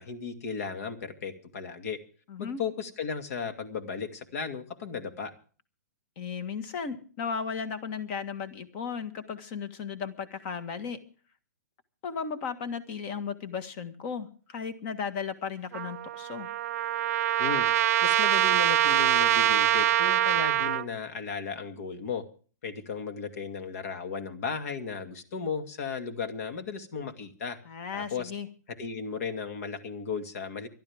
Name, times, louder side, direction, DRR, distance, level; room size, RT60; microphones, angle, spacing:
voice 1, 0.0-2.0 2.4-5.3 17.4-17.7 18.0-22.3 22.6-27.6 27.9-28.3 28.8-30.7, left 5 dB, 60° left, 7 dB, 2.3 m, -35 dB
voice 2, 2.3-2.6 6.2-11.0 12.0-16.5 27.6-28.5, left 6 dB, 40° left, 10 dB, 1.7 m, -35 dB
Trumpet, 15.7-20.9, right 12 dB, 55° right, 0.7 m, -24 dB
25.0 x 11.5 x 3.6 m, 0.41 s
hypercardioid pair, 145°, 9 cm